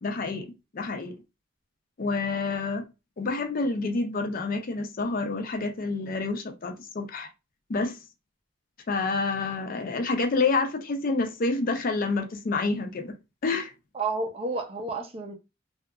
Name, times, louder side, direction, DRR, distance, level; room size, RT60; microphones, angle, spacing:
voice 1, 0.0-1.2 2.0-2.8 3.2-7.3 7.7-8.0 8.9-13.1 13.4-13.7, left 3 dB, 45° left, 0.5 m, -28 dB
voice 2, 13.9-15.3, right 3 dB, 30° right, 0.5 m, -30 dB
2.7 x 2.4 x 2.3 m
head